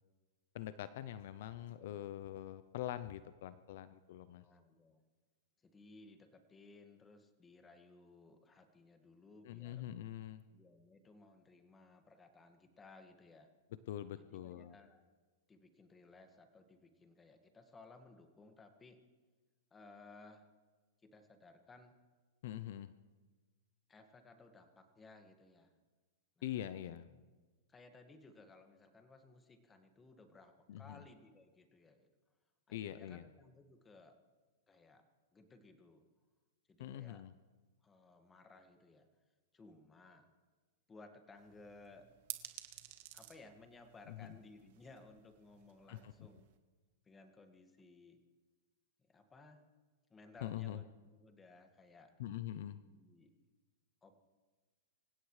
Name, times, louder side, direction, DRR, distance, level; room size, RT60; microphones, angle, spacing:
voice 1, 0.5-4.4 9.4-10.4 13.9-14.7 22.4-22.9 26.4-27.1 30.7-31.0 32.7-33.2 36.8-37.3 44.2-44.3 45.9-46.1 50.4-50.8 52.2-52.8, left 12 dB, 65° left, 14 dB, 0.6 m, -44 dB
voice 2, 4.3-5.0 5.6-9.9 10.5-13.5 14.2-15.0 15.5-19.0 19.7-20.5 21.0-21.9 23.9-25.7 26.4-26.5 26.9-27.2 27.7-32.1 32.7-34.2 34.7-35.0 35.3-36.0 36.7-37.3 37.8-39.1 39.5-40.3 40.9-42.1 43.1-46.5 47.0-48.2 49.0-49.7 50.1-52.1 52.8-53.4 54.0-54.2, left 3 dB, 15° left, 6 dB, 1.9 m, -60 dB
sound 1, 41.4-46.6, right 15 dB, 60° right, 1.6 m, -53 dB
25.5 x 16.5 x 3.3 m, 1.4 s
hypercardioid pair, 125°, 0 cm